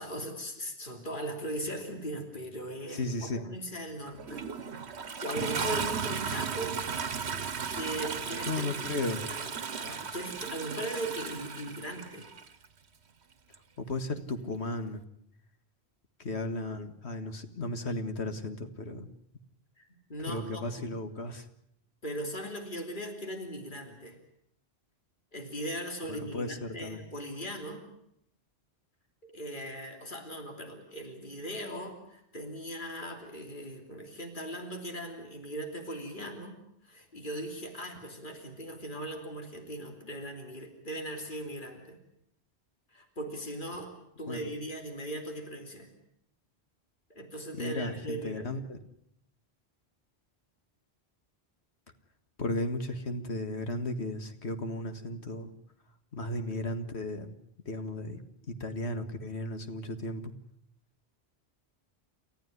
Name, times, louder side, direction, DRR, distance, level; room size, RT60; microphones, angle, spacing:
voice 1, 0.0-6.8 7.7-12.3 19.8-21.0 22.0-24.2 25.3-27.8 29.2-36.6 36.8-42.0 42.9-43.9 44.2-45.9 47.1-48.5, right 1 dB, 50° left, 3 dB, 3.5 m, -39 dB
voice 2, 3.0-3.4 8.5-9.2 13.8-15.0 16.2-19.1 20.3-21.4 26.1-27.0 44.3-44.4 47.6-48.8 52.4-55.5 56.1-57.3 57.7-58.2 58.6-60.3, left 2 dB, 90° left, 8 dB, 2.1 m, -35 dB
Toilet flush, 4.1-12.5 13.5-13.6, right 6 dB, 85° right, 1.4 m, -35 dB
29.0 x 14.0 x 9.5 m, 0.73 s
omnidirectional pair, 1.1 m